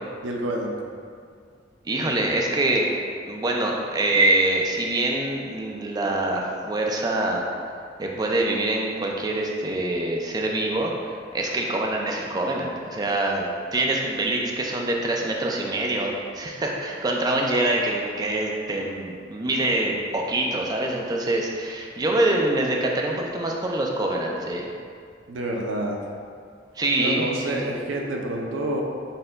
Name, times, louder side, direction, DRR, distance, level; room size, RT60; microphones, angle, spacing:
voice 1, 0.2-0.7 25.3-26.0 27.0-28.8, right 1 dB, 70° right, 0 dB, 0.5 m, -28 dB
voice 2, 1.9-2.9 3.3-7.4 8.0-10.9 11.3-24.7 26.8-27.6, right 2 dB, 20° right, -1 dB, 0.4 m, -25 dB
4.2 x 2.2 x 3.8 m, 2.2 s
head